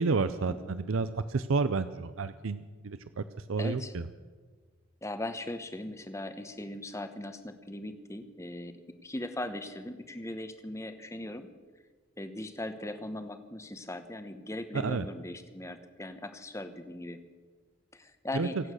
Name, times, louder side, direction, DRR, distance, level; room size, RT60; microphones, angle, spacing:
voice 1, 0.0-3.2 3.5-4.0 14.7-15.1 18.3-18.5, right 4 dB, 75° right, 12 dB, 0.6 m, -30 dB
voice 2, 3.6-3.9 5.0-11.5 12.2-17.2 17.9-18.6, left 1 dB, 15° left, 9 dB, 0.9 m, -39 dB
25.5 x 8.8 x 6.4 m, 1.4 s
head